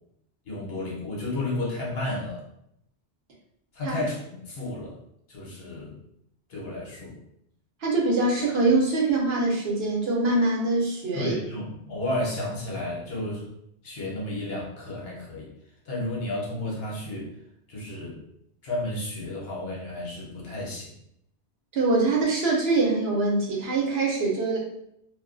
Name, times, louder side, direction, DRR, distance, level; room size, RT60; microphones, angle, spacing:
voice 1, 0.4-2.4 3.7-5.0 5.3-6.0 6.5-7.2 11.1-13.5 13.8-15.5 15.8-17.4 17.7-18.2 18.6-21.0, left 1 dB, 60° left, -4 dB, 0.9 m, -32 dB
voice 2, 7.8-11.3 21.7-24.6, right 3 dB, 65° right, -3 dB, 0.9 m, -23 dB
2.3 x 2.2 x 2.4 m, 0.76 s
omnidirectional pair, 1.2 m